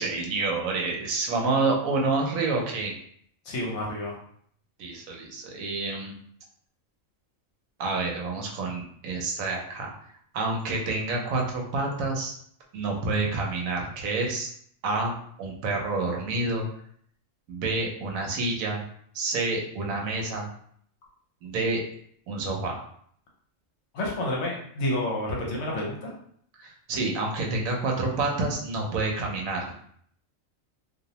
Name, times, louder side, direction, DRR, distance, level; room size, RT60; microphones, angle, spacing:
voice 1, 0.0-2.9 4.8-6.1 7.8-9.9 10.3-12.3 12.7-14.5 14.8-15.1 15.4-16.6 17.5-18.8 19.1-20.5 21.4-21.8 22.3-22.8 26.6-29.7, right 3 dB, 85° right, 0 dB, 1.0 m, -28 dB
voice 2, 3.5-4.2 23.9-26.1, left 1 dB, 65° left, -2 dB, 0.9 m, -29 dB
2.5 x 2.0 x 2.8 m, 0.63 s
omnidirectional pair, 1.4 m